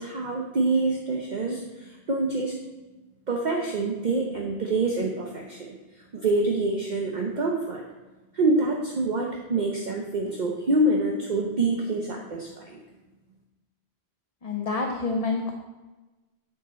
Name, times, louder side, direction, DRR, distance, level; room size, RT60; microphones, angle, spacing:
voice 1, 0.0-2.5 3.3-5.8 6.1-7.8 8.3-12.8, right 2 dB, 45° right, 0 dB, 0.9 m, -26 dB
voice 2, 14.4-15.5, left 3 dB, 40° left, 2 dB, 0.8 m, -27 dB
8.0 x 6.6 x 4.2 m, 1.1 s
omnidirectional pair, 1.1 m